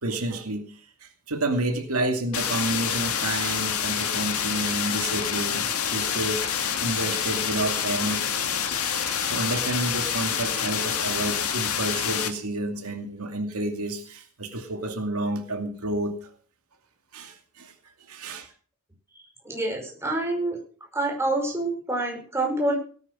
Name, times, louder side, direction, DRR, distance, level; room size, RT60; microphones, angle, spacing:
voice 1, 0.0-6.5 6.8-8.2 9.0-16.3 17.1-17.7 18.1-18.5, right 2 dB, 80° right, 4 dB, 2.4 m, -30 dB
sound 1, 2.3-12.3, left 8 dB, 75° left, 2.2 m, -27 dB
voice 2, 19.2-20.6 20.9-22.8, right 2 dB, 10° right, 0 dB, 5.4 m, -27 dB
18.0 x 9.5 x 6.2 m, 0.43 s
head